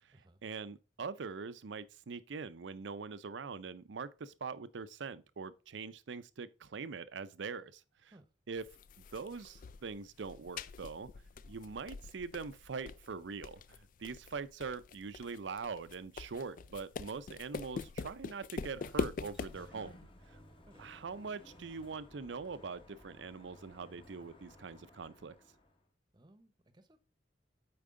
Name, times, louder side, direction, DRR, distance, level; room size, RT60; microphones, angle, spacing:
voice 1, 0.4-8.1 8.5-8.6 9.0-11.1 11.4-20.0 20.3-20.4 20.8-25.3, right 5 dB, 90° right, 0.5 m, -43 dB
sound 1, 8.6-19.7, left 4 dB, 50° left, 0.3 m, -44 dB
Sliding door, 18.6-25.8, left 1 dB, 30° left, 1.1 m, -58 dB
voice 2, 26.1-27.0, right 1 dB, 25° right, 0.8 m, -62 dB
8.6 x 4.7 x 3.7 m
head